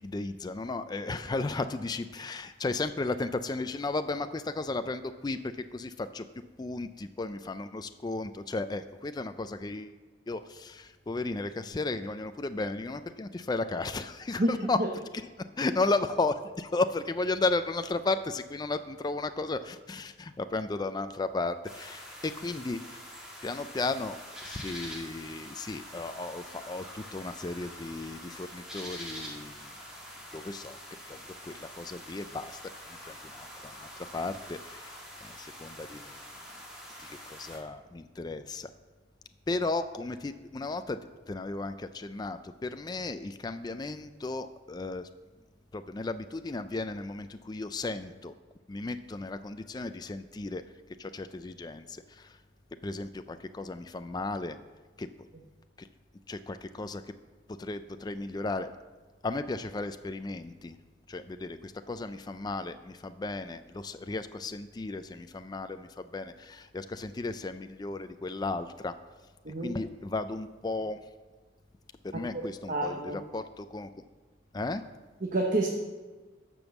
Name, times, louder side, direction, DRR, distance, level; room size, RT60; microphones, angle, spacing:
voice 1, 0.0-6.2 6.6-10.0 10.3-14.8 15.6-23.0 23.4-29.7 30.3-30.8 31.1-32.6 32.8-34.9 35.2-36.2 37.0-38.7 39.5-41.0 41.3-45.1 45.7-48.3 48.7-50.6 51.0-52.4 52.8-54.6 55.0-55.1 55.8-55.9 56.3-57.0 57.6-58.7 59.2-60.8 61.1-68.9 69.6-71.0 72.1-73.9 74.5-74.8, left 3 dB, 20° left, 10 dB, 0.3 m, -34 dB
sound 1, 21.6-37.6, equal, 5° right, 2.1 m, -45 dB
voice 2, 69.4-69.8 72.7-73.2 75.2-75.7, right 1 dB, 45° right, 1 dB, 0.9 m, -28 dB
12.0 x 5.3 x 7.0 m, 1.3 s
head